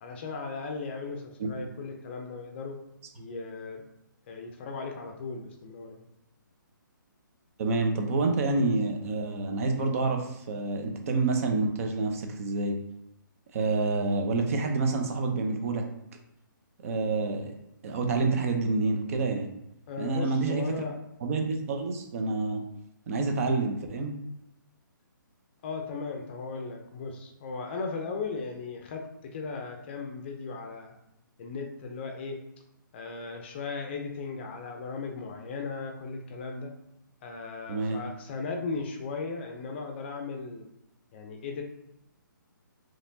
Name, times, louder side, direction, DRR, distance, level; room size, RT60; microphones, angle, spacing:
voice 1, 0.0-2.8 3.2-3.8 4.3-6.1 19.9-21.0 25.6-30.9 31.4-32.4 32.9-36.7 37.2-40.7 41.1-41.6, left 4 dB, 30° left, 3 dB, 0.5 m, -37 dB
voice 2, 7.6-12.8 13.5-15.8 16.8-17.5 17.8-19.5 20.0-20.8 21.2-22.6 23.1-24.2 37.7-38.0, right 3 dB, 40° right, 3 dB, 0.7 m, -28 dB
4.1 x 3.0 x 2.7 m, 0.84 s
hypercardioid pair, 150°, 11 cm